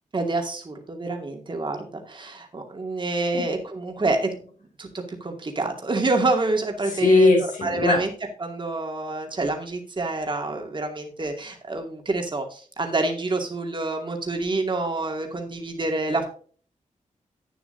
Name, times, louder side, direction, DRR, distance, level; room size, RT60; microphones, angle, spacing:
voice 1, 0.1-4.4 4.8-7.3 7.6-8.1 8.4-16.2, right 2 dB, 40° right, 3 dB, 2.5 m, -27 dB
voice 2, 6.8-8.0, left 3 dB, 85° left, 2 dB, 4.1 m, -19 dB
11.5 x 9.3 x 2.7 m, 0.42 s
wide cardioid pair, 115°, 13 cm